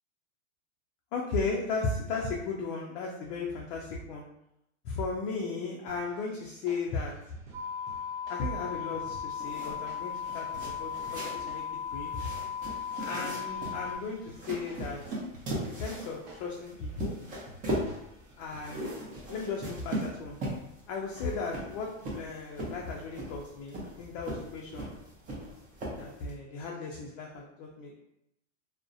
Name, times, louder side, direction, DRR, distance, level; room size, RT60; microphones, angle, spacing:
voice 1, 1.1-4.2 4.8-7.1 8.3-11.6 11.9-12.1 13.0-15.0 15.6-17.2 18.4-20.4 20.9-24.9 26.0-28.0, left 4 dB, 45° left, -1 dB, 0.4 m, -36 dB
sound 1, 5.9-19.0, right 1 dB, 60° right, 0.8 m, -54 dB
sound 2, 7.5-14.0, left 7 dB, 10° left, 1.2 m, -36 dB
sound 3, 9.3-26.3, right 1 dB, 20° right, 0.6 m, -39 dB
2.3 x 2.1 x 2.5 m, 0.81 s
supercardioid pair, 130°, 38 cm